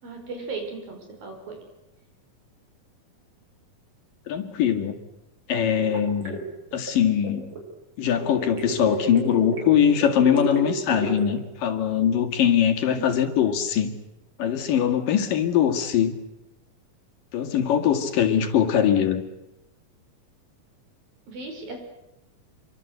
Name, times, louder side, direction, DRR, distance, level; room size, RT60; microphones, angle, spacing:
voice 1, 0.0-1.6 12.8-13.1 21.3-21.8, right 3 dB, 75° right, 3 dB, 7.3 m, -36 dB
voice 2, 4.3-5.0 5.5-6.4 6.7-7.5 8.0-14.0 14.4-16.2 17.3-19.2, left 9 dB, 70° left, 5 dB, 3.7 m, -22 dB
sound 1, 5.8-7.6 8.2-11.4, right 3 dB, 35° right, 6.6 m, -32 dB
27.0 x 24.0 x 8.1 m, 0.94 s
omnidirectional pair, 4.1 m